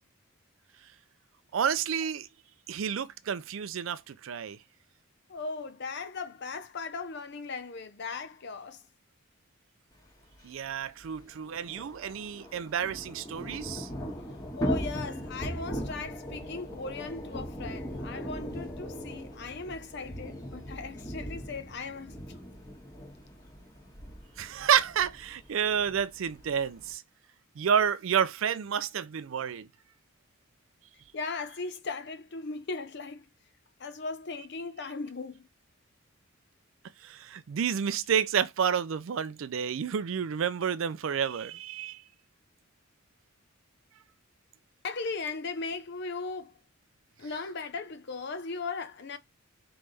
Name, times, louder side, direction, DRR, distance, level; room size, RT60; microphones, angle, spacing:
voice 1, 1.5-2.3 2.7-4.6 10.4-13.9 24.4-27.0 27.6-29.7 37.0-42.0, right 8 dB, 70° right, 0.4 m, -30 dB
voice 2, 5.3-8.8 14.5-22.4 31.1-33.3 33.8-35.5 44.8-46.6 47.2-49.2, left 4 dB, 55° left, 0.6 m, -38 dB
Thunder / Rain, 10.3-10.4 10.6-10.7 11.0-26.9, equal, 15° left, 1.5 m, -39 dB
3.9 x 3.5 x 3.2 m
head